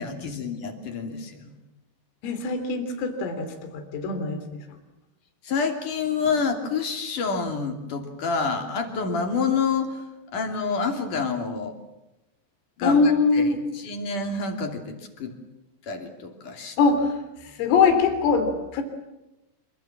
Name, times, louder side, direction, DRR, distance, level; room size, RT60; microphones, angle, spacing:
voice 1, 0.0-1.5 5.4-10.0 10.3-11.8 12.8-15.3 15.9-16.8, left 5 dB, 45° left, 5 dB, 3.9 m, -28 dB
voice 2, 2.2-4.6 12.8-13.6 16.8-17.2 17.4-18.8, left 4 dB, 90° left, 6 dB, 6.0 m, -22 dB
26.5 x 25.0 x 7.4 m, 0.96 s
omnidirectional pair, 5.7 m